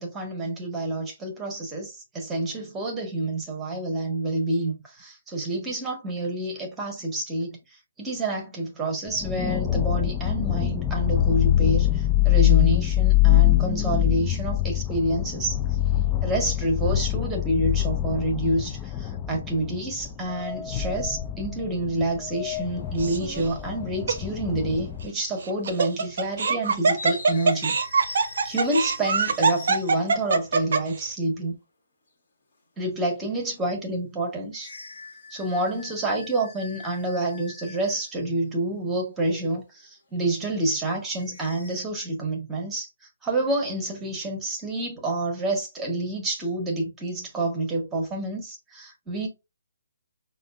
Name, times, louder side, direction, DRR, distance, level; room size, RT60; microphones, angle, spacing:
voice 1, 0.0-7.6 8.0-15.6 16.2-27.8 28.0-28.2 28.4-31.6 32.8-34.7 35.3-42.9 43.2-49.3, right 2 dB, 10° right, 1.2 m, -28 dB
sound 1, 9.1-25.1, left 13 dB, 15° left, 0.4 m, -24 dB
sound 2, 22.6-22.8 24.0-24.1 25.1-25.5 25.8-25.9 26.9-30.2 34.5-38.3 41.1-41.8, left 3 dB, 55° left, 1.4 m, -43 dB
Laughter, 23.0-23.5 24.1-24.2 25.4-31.0, right 4 dB, 55° right, 0.6 m, -23 dB
5.6 x 2.4 x 2.4 m
figure-of-eight pair, 140°, 0 cm